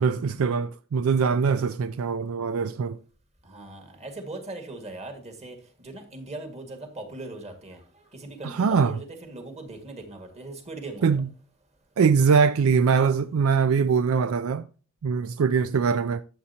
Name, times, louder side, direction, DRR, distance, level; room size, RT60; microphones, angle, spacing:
voice 1, 0.0-3.0 8.4-9.0 11.0-11.3 12.0-14.7 15.0-16.2, right 5 dB, 70° right, 0.4 m, -22 dB
voice 2, 3.4-7.8 8.1-11.1, right 2 dB, 30° right, 1.9 m, -40 dB
12.5 x 7.8 x 2.8 m
head